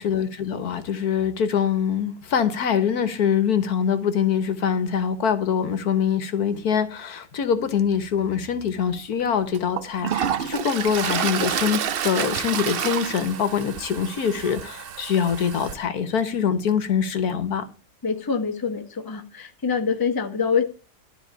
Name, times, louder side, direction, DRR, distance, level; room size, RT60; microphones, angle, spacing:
voice 1, 0.0-17.7, left 7 dB, 65° left, 1.5 m, -24 dB
Toilet flush, 8.9-9.0 9.5-15.7, right 8 dB, 75° right, 0.5 m, -29 dB
voice 2, 18.0-20.6, left 5 dB, 15° left, 1.0 m, -25 dB
12.5 x 4.3 x 8.2 m
omnidirectional pair, 1.8 m